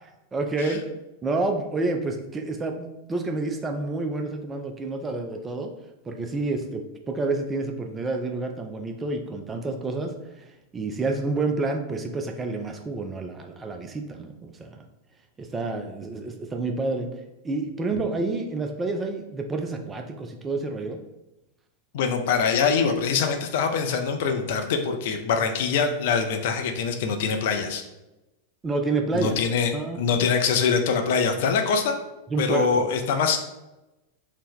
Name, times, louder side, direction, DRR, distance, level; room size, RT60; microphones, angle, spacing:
voice 1, 0.3-0.8 1.2-5.7 6.1-10.2 10.7-14.8 15.4-17.1 17.4-21.0 28.6-29.4 29.7-30.0 32.3-32.9, right 3 dB, 20° right, 4 dB, 0.4 m, -29 dB
voice 2, 21.9-27.8 29.1-29.7 30.0-31.9 32.4-33.4, left 6 dB, 55° left, 5 dB, 0.4 m, -24 dB
2.7 x 2.1 x 3.6 m, 0.98 s
figure-of-eight pair, 90°, 0 cm